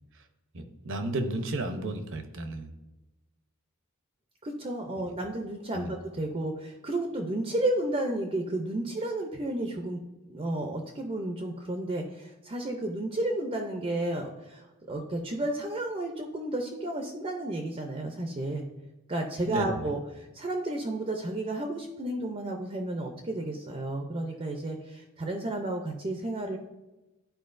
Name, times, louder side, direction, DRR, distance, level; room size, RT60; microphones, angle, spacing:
voice 1, 0.5-2.7 5.7-5.9 19.5-19.9, right 2 dB, 60° right, 7 dB, 0.8 m, -33 dB
voice 2, 4.4-10.0 10.3-18.6 19.1-26.6, right 1 dB, 25° right, 3 dB, 0.6 m, -32 dB
11.5 x 4.5 x 2.6 m, 1.1 s
head